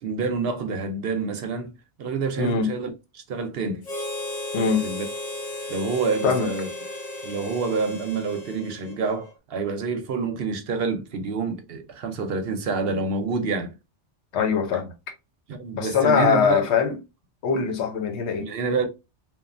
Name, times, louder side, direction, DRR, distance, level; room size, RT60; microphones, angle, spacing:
voice 1, 0.0-3.9 4.8-5.0 5.7-6.7 7.2-13.7 15.5-16.6 18.4-18.9, right 4 dB, 65° right, 0.8 m, -28 dB
voice 2, 2.4-2.7 4.5-4.9 6.2-6.5 14.3-14.9 15.7-17.0 17.4-18.5, left 6 dB, 80° left, 1.0 m, -22 dB
Harmonica, 3.8-9.3, left 1 dB, 60° left, 1.2 m, -35 dB
3.0 x 2.3 x 2.4 m
omnidirectional pair, 1.1 m